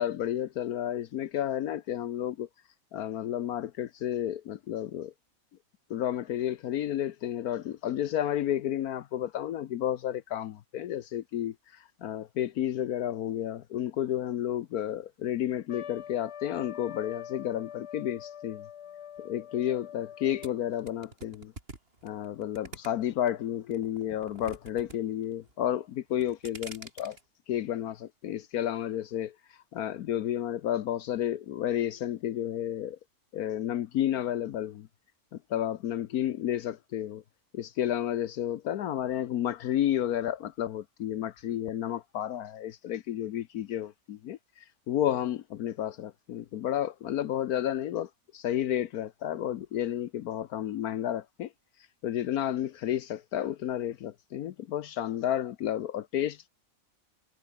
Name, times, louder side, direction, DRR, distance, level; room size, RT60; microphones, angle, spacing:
voice 1, 0.0-2.5 2.9-5.1 5.9-11.5 12.0-18.7 19.2-21.5 22.0-27.2 27.5-29.3 29.7-33.0 33.3-34.9 35.5-37.2 37.5-51.5 52.0-56.5, left 11 dB, 75° left, 1.2 m, -31 dB
Trumpet, 15.7-20.7, left 9 dB, 50° left, 1.0 m, -44 dB
sound 1, 20.4-23.3 23.7-25.0 25.2-25.7 26.1-27.2, right 3 dB, 35° right, 3.4 m, -46 dB
omnidirectional pair, 1.7 m